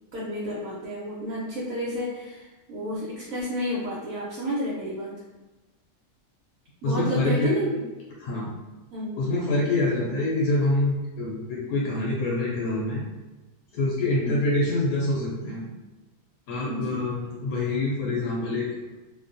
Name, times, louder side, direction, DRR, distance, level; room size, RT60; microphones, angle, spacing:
voice 1, 0.1-5.1 6.8-7.7 8.9-9.2 16.7-17.0, equal, 70° right, -8 dB, 1.1 m, -31 dB
voice 2, 6.8-7.5 8.2-8.5 9.2-13.0 13.7-15.7 16.5-18.7, left 2 dB, 80° left, -4 dB, 1.0 m, -25 dB
2.6 x 2.2 x 2.5 m, 1.1 s
omnidirectional pair, 1.6 m